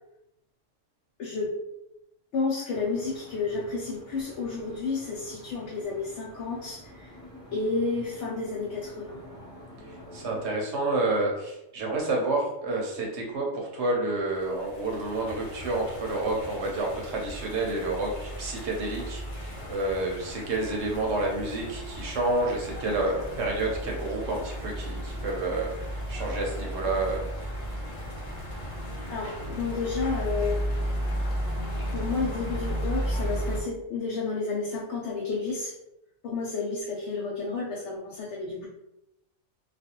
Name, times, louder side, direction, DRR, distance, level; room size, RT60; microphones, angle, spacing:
voice 1, 1.2-1.6 2.3-7.1 7.5-9.2 29.1-30.6 31.9-35.7 36.2-38.7, left 4 dB, 70° left, -3 dB, 0.8 m, -31 dB
sound 1, 2.7-10.5, left 1 dB, 20° right, 0.9 m, -48 dB
voice 2, 9.9-27.3, right 2 dB, 70° right, 0 dB, 0.9 m, -29 dB
sound 2, 14.3-33.6, equal, 40° left, 0.5 m, -34 dB
2.4 x 2.3 x 2.8 m, 0.88 s
omnidirectional pair, 1.3 m